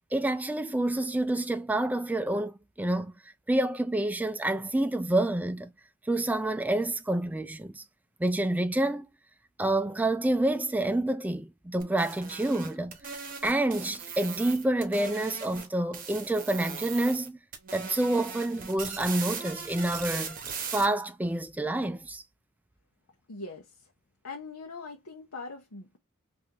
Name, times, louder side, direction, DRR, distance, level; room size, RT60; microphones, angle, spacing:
voice 1, 0.1-3.1 3.5-5.7 6.1-7.8 8.2-9.1 9.6-13.0 13.4-17.4 17.7-20.4 20.7-22.2, right 1 dB, 5° right, 0.3 m, -28 dB
sound 1, 11.8-15.7 15.9-17.3 17.5-20.8, right 6 dB, 40° right, 0.9 m, -39 dB
voice 2, 23.3-23.9 24.2-26.0, left 3 dB, 80° left, 0.8 m, -42 dB
3.6 x 2.6 x 2.8 m
head